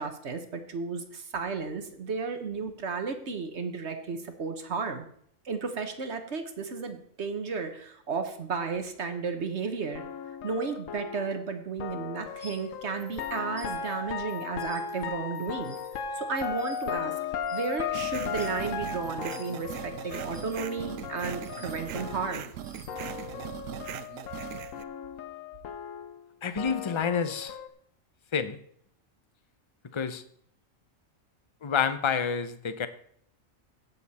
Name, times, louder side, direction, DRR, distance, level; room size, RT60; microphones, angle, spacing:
voice 1, 0.0-5.1 5.4-10.0 10.4-15.8 16.2-17.1 17.5-22.4, right 5 dB, 60° right, 7 dB, 1.4 m, -33 dB
sound 1, 9.9-22.6 22.9-27.7, left 7 dB, 85° left, 1.2 m, -37 dB
sound 2, 12.2-23.5, left 1 dB, 45° left, 2.7 m, -54 dB
sound 3, 17.9-24.8, right 10 dB, 80° right, 1.0 m, -40 dB
voice 2, 26.4-27.6 28.3-28.6 29.9-30.2 31.6-32.9, left 6 dB, 30° left, 11 dB, 0.6 m, -28 dB
16.5 x 6.8 x 4.2 m, 0.65 s
omnidirectional pair, 1.4 m